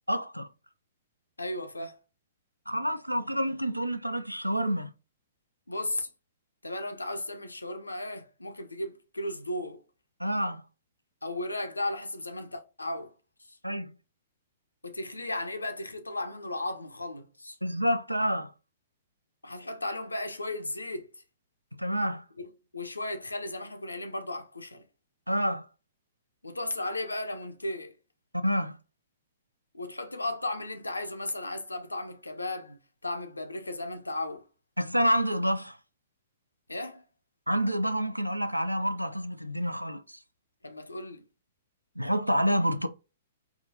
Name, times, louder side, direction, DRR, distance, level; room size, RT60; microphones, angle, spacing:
voice 1, 0.1-0.5 2.7-4.9 10.2-10.6 13.6-13.9 17.6-18.5 21.8-22.2 25.3-25.7 28.4-28.8 34.8-35.8 37.5-40.2 42.0-42.9, equal, 90° right, 0.4 m, -28 dB
voice 2, 1.4-2.0 5.7-6.1 6.6-9.8 11.2-13.1 13.5-13.6 14.8-17.6 19.4-21.2 22.4-24.9 26.4-28.0 29.7-34.4 36.7-37.0 40.6-41.2, left 1 dB, 80° left, 0.6 m, -35 dB
4.8 x 2.3 x 2.6 m
figure-of-eight pair, 115°, 0 cm